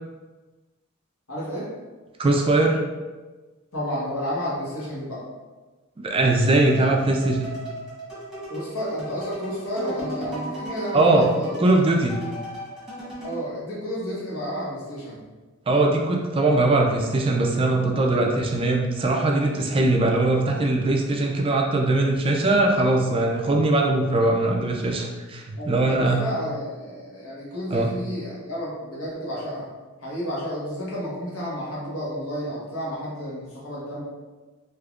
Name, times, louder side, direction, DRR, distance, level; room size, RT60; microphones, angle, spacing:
voice 1, 1.3-1.7 3.7-5.2 8.5-11.6 13.2-15.2 22.5-22.6 25.6-29.7 30.0-34.0, equal, 80° left, -6 dB, 1.2 m, -31 dB
voice 2, 2.2-2.8 6.0-7.5 10.9-11.3 11.6-12.2 15.7-26.2 27.7-27.9, right 2 dB, 25° right, 1 dB, 0.3 m, -21 dB
sound 1, 6.3-13.4, equal, 5° right, 1.2 m, -37 dB
3.5 x 2.8 x 2.3 m, 1.3 s
head